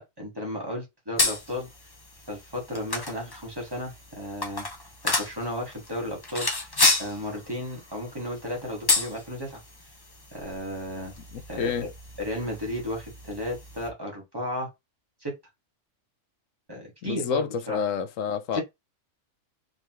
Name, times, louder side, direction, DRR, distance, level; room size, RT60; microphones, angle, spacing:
voice 1, 0.0-1.7 2.3-4.7 5.0-6.5 7.0-9.6 10.3-11.1 11.5-11.7 12.2-14.7 15.2-15.3 16.7-17.8 18.5-18.6, left 1 dB, 20° right, 1.7 m, -34 dB
sound 1, 1.2-13.9, left 3 dB, 25° left, 0.7 m, -31 dB
voice 2, 11.3-11.9 17.0-18.6, left 6 dB, 80° left, 1.0 m, -29 dB
3.8 x 3.3 x 3.0 m
omnidirectional pair, 1.3 m